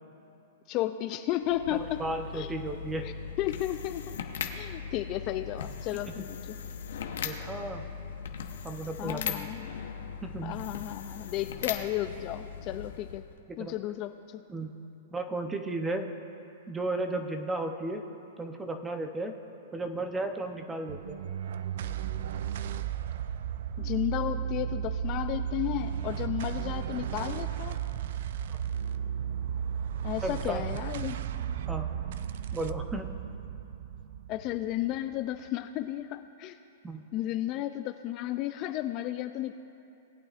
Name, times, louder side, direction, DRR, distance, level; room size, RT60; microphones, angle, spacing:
voice 1, 0.7-2.0 2.3-2.5 3.0-4.1 4.5-6.6 9.0-9.7 10.4-13.2 13.6-14.4 23.8-27.8 30.0-31.2 34.3-36.6 37.1-39.6, left 13 dB, 35° left, 9 dB, 0.3 m, -33 dB
sound 1, 1.4-13.4, left 7 dB, 75° left, 0.8 m, -39 dB
voice 2, 2.0-3.1 6.2-6.3 7.2-7.9 8.6-9.4 10.2-10.5 13.6-13.7 14.5-14.7 15.1-16.1 16.7-18.0 18.4-19.3 19.7-21.2 28.5-28.6 30.2-30.6 31.7-31.9 32.5-33.2 36.8-37.0, right 2 dB, 10° right, 6 dB, 0.7 m, -34 dB
sound 2, 20.9-35.5, right 9 dB, 65° right, 0.4 m, -34 dB
19.0 x 8.9 x 2.5 m, 2.7 s
hypercardioid pair, 150°, 0 cm